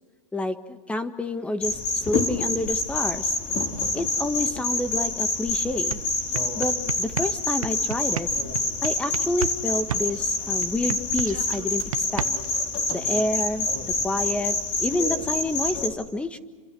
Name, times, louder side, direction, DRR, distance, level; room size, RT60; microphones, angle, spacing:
voice 1, 0.3-3.4 3.9-6.0 6.6-8.3 8.8-12.3 12.9-16.4, left 2 dB, 5° left, 9 dB, 1.6 m, -29 dB
sound 1, 1.6-15.9, left 3 dB, 40° left, 5.0 m, -27 dB
sound 2, 5.4-5.5 5.7-9.6 9.9-12.6, right 9 dB, 90° right, 1.0 m, -32 dB
29.5 x 26.0 x 6.3 m, 1.4 s
hypercardioid pair, 130°, 17 cm